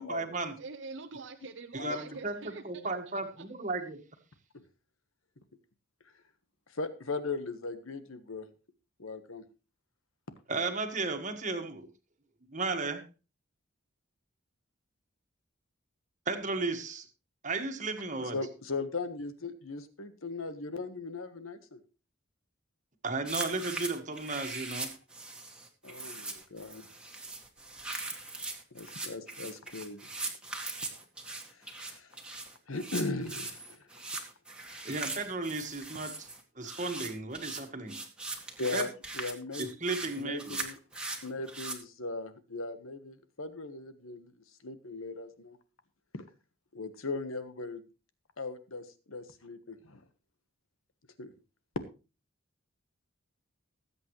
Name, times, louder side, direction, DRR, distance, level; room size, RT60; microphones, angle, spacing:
voice 1, 0.0-0.5 1.7-4.0 10.5-11.9 12.5-13.0 16.2-17.1 17.4-18.4 23.0-24.9 34.8-36.3 36.5-38.0 38.7-38.8 39.6-40.6, right 3 dB, 35° right, 6 dB, 1.7 m, -34 dB
voice 2, 0.6-3.2, right 4 dB, 60° right, 5 dB, 0.7 m, -45 dB
voice 3, 6.7-8.5 9.0-9.4 18.2-21.8 25.8-26.8 28.7-30.1 31.6-32.1 32.7-33.8 38.6-39.7 40.2-40.7 41.1-44.3 44.6-45.6 46.1-46.3 46.7-47.8 48.4-50.0 51.2-51.3, left 3 dB, 75° left, 10 dB, 1.4 m, -38 dB
sound 1, 23.2-41.7, right 3 dB, 5° right, 1.8 m, -40 dB
19.5 x 8.4 x 3.2 m, 0.31 s
head